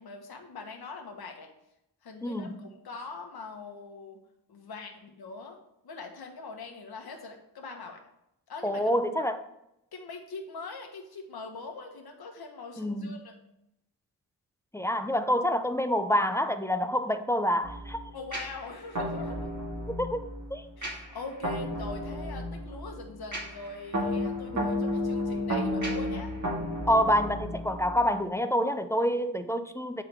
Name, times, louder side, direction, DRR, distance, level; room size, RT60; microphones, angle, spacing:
voice 1, 0.0-1.5 2.0-4.2 4.5-5.6 5.8-8.0 8.5-9.3 9.9-13.3 18.1-19.5 20.8-26.3, left 4 dB, 60° left, 3 dB, 1.3 m, -42 dB
voice 2, 2.2-2.6 8.6-9.4 12.8-13.2 14.7-18.0 19.9-20.2 20.5-20.6 24.5-24.6 26.9-30.0, equal, 5° left, 9 dB, 0.4 m, -27 dB
sound 1, 17.6-28.2, equal, 45° right, 1.9 m, -33 dB
8.5 x 3.8 x 3.4 m, 0.82 s
cardioid pair, 70°, 43 cm